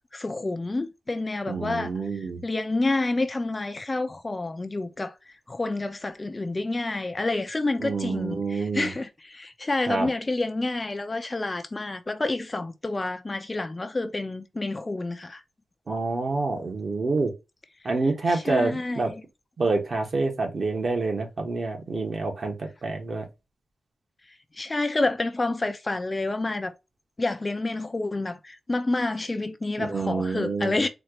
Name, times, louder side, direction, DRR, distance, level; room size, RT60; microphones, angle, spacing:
voice 1, 0.1-15.4 18.3-19.2 24.6-26.7 27.2-30.9, left 2 dB, 25° left, 0.5 m, -29 dB
voice 2, 1.5-2.4 7.8-8.9 9.9-10.1 15.9-17.3 17.8-19.1 19.6-23.2 29.8-30.7, right 3 dB, 50° right, 1.2 m, -27 dB
4.3 x 2.4 x 2.9 m
wide cardioid pair, 135°, 0 cm